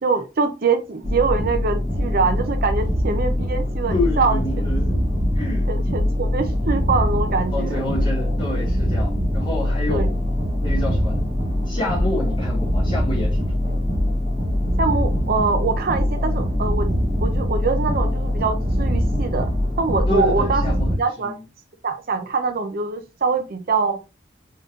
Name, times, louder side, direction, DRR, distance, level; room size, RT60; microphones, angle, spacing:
voice 1, 0.0-4.4 5.7-7.8 9.9-10.1 14.8-16.9 17.2-19.5 19.8-21.3 21.8-24.0, right 4 dB, 50° right, 0.6 m, -24 dB
sound 1, 1.0-21.0, left 1 dB, 30° right, 1.5 m, -22 dB
voice 2, 3.9-5.0 5.3-5.7 7.5-10.1 10.6-11.2 11.7-13.8 20.1-21.3, left 1 dB, 25° left, 2.2 m, -28 dB
4.0 x 3.8 x 2.5 m
head